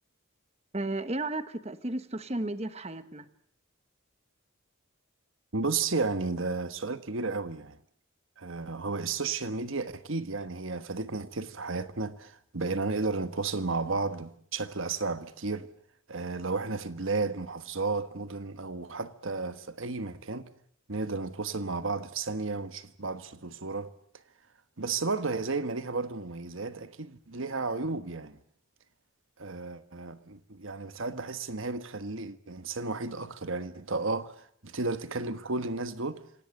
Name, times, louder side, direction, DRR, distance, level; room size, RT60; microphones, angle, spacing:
voice 1, 0.7-3.3, right 2 dB, 30° right, 1.2 m, -33 dB
voice 2, 5.5-7.8 8.4-15.7 16.1-20.5 20.9-23.9 24.8-28.4 29.4-36.2, right 3 dB, 65° right, 1.3 m, -33 dB
26.5 x 18.0 x 7.8 m
head